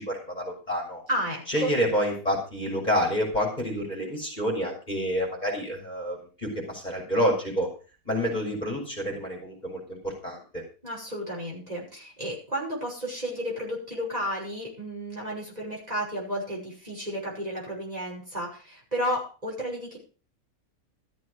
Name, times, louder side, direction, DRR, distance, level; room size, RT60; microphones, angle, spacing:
voice 1, 0.0-1.0 1.5-7.7 8.1-10.6, equal, 25° left, -1 dB, 5.9 m, -28 dB
voice 2, 1.1-1.7 10.8-20.0, equal, 25° right, -3 dB, 6.1 m, -32 dB
14.5 x 7.7 x 6.4 m, 0.35 s
omnidirectional pair, 1.6 m